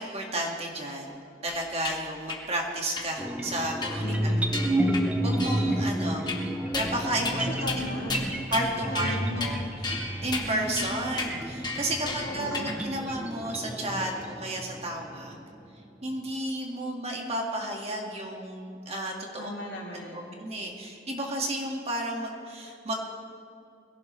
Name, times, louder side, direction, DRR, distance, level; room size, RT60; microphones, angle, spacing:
voice 1, 0.0-6.3 6.7-7.5 8.5-9.6 9.8-15.4 16.0-19.5 19.9-22.9, right 1 dB, 30° right, 0 dB, 1.8 m, -32 dB
sound 1, 1.5-2.0 2.3-2.4 3.0-3.1 3.8-4.2 4.5-5.1 5.4-5.8 6.3-6.9 7.2-7.4 7.7-7.8 8.1-8.7 8.9-9.5 9.8-12.8, left 3 dB, 20° left, 1.4 m, -34 dB
sound 2, 3.2-15.3, right 1 dB, 5° right, 0.7 m, -31 dB
voice 2, 4.0-4.8 7.3-8.3 8.8-9.4 12.1-12.8 19.4-20.3, left 1 dB, 60° left, -4 dB, 3.4 m, -37 dB
22.0 x 16.5 x 3.2 m, 2.6 s
head